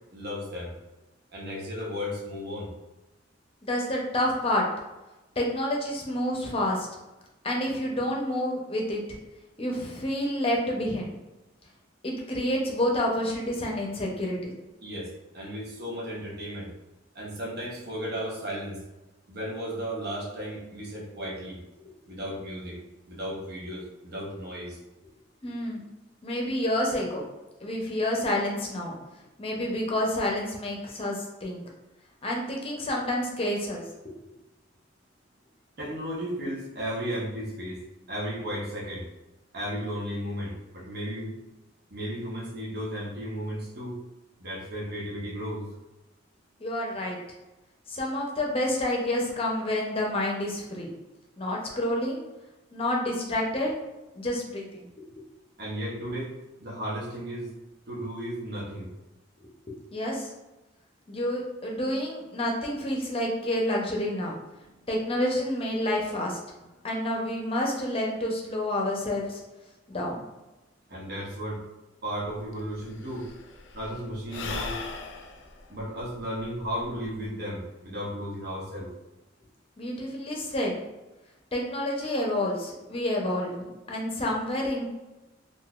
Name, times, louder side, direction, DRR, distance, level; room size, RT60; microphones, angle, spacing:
voice 1, 0.1-0.7 1.3-2.7 14.8-16.7 17.1-18.8 19.3-21.6 22.1-22.8 23.1-24.8 35.8-39.1 39.5-41.4 41.9-44.0 44.4-45.7 55.6-57.5 57.9-58.9 70.9-71.6 72.0-73.3 73.7-74.8 75.7-78.9, equal, 60° right, -3 dB, 0.9 m, -34 dB
voice 2, 3.6-4.6 5.4-6.9 7.4-9.0 9.6-11.2 12.0-14.6 25.4-25.8 26.2-27.2 27.6-28.9 29.4-31.6 32.2-34.1 46.6-47.2 47.9-50.9 51.4-52.2 52.7-53.7 54.1-55.2 59.7-60.3 61.1-64.4 64.9-66.4 66.8-69.4 69.9-70.2 79.8-80.7 81.5-84.9, left 1 dB, 30° left, -1 dB, 0.6 m, -29 dB
Sigh / Breathing, 72.2-72.3 72.5-77.3, left 3 dB, 75° left, 0.4 m, -39 dB
3.8 x 2.5 x 2.4 m, 1.0 s
head